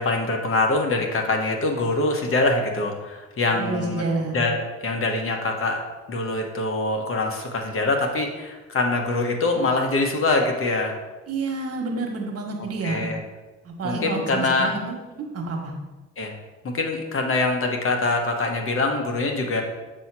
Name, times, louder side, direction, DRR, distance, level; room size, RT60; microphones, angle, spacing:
voice 1, 0.0-4.0 4.3-11.0 12.8-13.2 13.8-14.7 16.2-16.3 16.6-19.6, left 2 dB, 45° left, 3 dB, 1.1 m, -24 dB
voice 2, 3.5-4.4 11.3-13.0 13.6-15.7, right 3 dB, 55° right, 1 dB, 1.4 m, -29 dB
7.3 x 2.8 x 6.0 m, 1.2 s
cardioid pair, 90°, 30 cm